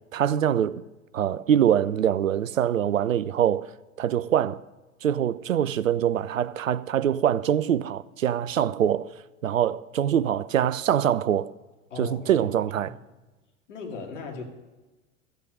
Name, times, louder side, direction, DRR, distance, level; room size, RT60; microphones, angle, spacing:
voice 1, 0.1-0.8 1.1-3.7 4.0-4.6 5.0-9.1 9.4-11.5 12.0-13.0, right 10 dB, 80° right, 0.5 m, -24 dB
voice 2, 11.9-12.5 12.7-13.0 13.7-14.4, left 4 dB, 65° left, 2.4 m, -37 dB
14.0 x 8.2 x 5.3 m
figure-of-eight pair, 85°, 39 cm